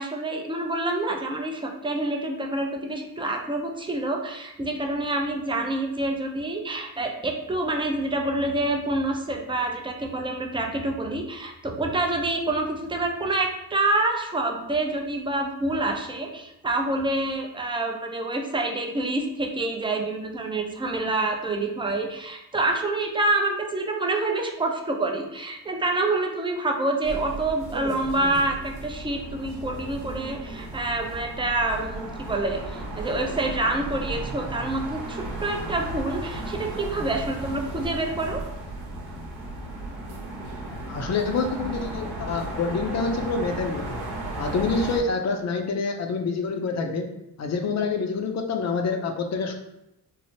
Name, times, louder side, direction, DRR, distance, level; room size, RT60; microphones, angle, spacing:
voice 1, 0.0-38.4, right 2 dB, 15° right, 3 dB, 0.4 m, -27 dB
sound 1, 27.0-45.0, right 2 dB, 75° right, 0.9 m, -35 dB
voice 2, 40.9-44.1 44.4-47.1 47.4-49.5, left 4 dB, 45° left, 5 dB, 0.5 m, -27 dB
3.1 x 2.0 x 2.7 m, 0.86 s
cardioid pair, 80°, 38 cm